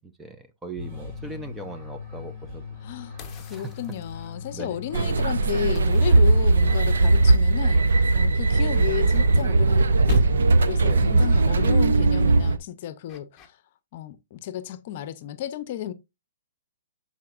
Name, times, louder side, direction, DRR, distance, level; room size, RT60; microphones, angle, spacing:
voice 1, 0.0-2.6 3.5-3.7 4.5-4.8 10.9-11.2, right 3 dB, 10° right, 0.6 m, -39 dB
sound 1, 0.8-6.9, left 5 dB, 40° right, 4.3 m, -39 dB
voice 2, 2.8-7.8 8.1-13.4 13.9-15.9, left 11 dB, 45° left, 0.7 m, -33 dB
sound 2, 3.2-4.5 5.8-6.9 8.7-9.8 10.1-10.8 13.1-13.5, left 5 dB, 15° left, 0.9 m, -36 dB
sound 3, 4.9-12.6, right 3 dB, 80° right, 0.6 m, -19 dB
12.0 x 4.2 x 2.5 m
hypercardioid pair, 150°, 0 cm